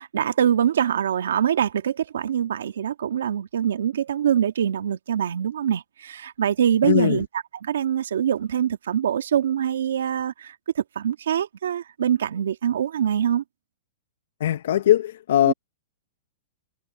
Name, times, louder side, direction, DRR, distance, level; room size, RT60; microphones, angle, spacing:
voice 1, 0.0-7.3 7.6-13.4 15.5-15.6, right 9 dB, 80° right, 2.0 m, -24 dB
voice 2, 6.8-7.2 14.4-15.5, left 11 dB, 65° left, 0.9 m, -20 dB
hypercardioid pair, 160°, 0 cm